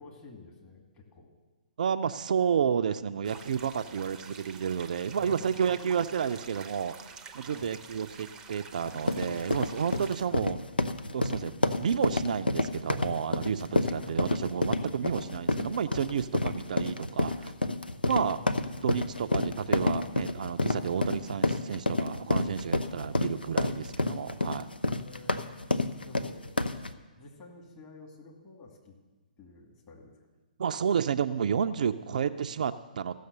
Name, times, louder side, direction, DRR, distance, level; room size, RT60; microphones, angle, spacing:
voice 1, 0.0-1.3 3.7-3.9 5.1-6.0 7.5-7.7 10.3-10.4 14.0-14.2 18.1-18.5 19.1-19.3 22.9-23.0 25.0-25.5 26.0-26.8 27.2-29.0 29.4-30.2, left 3 dB, 25° left, -1 dB, 2.3 m, -49 dB
voice 2, 1.8-6.9 7.3-10.6 11.1-17.5 18.0-18.4 18.8-24.7 30.6-33.1, right 7 dB, 55° right, 9 dB, 0.4 m, -31 dB
sound 1, 3.2-10.2, right 5 dB, 15° right, 0.7 m, -48 dB
sound 2, 8.8-26.9, left 2 dB, 85° left, 0.6 m, -29 dB
15.0 x 6.5 x 6.7 m, 1.2 s
figure-of-eight pair, 130°, 5 cm